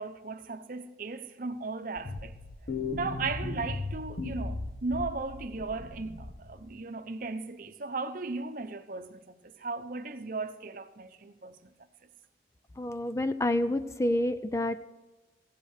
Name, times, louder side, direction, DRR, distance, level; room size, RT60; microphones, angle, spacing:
voice 1, 0.0-2.3 2.9-11.7, right 3 dB, 50° right, 0.8 m, -36 dB
sound 1, 2.0-6.6, left 3 dB, 60° left, 1.3 m, -37 dB
voice 2, 12.8-14.8, left 1 dB, 15° left, 0.4 m, -28 dB
16.0 x 8.1 x 6.5 m
head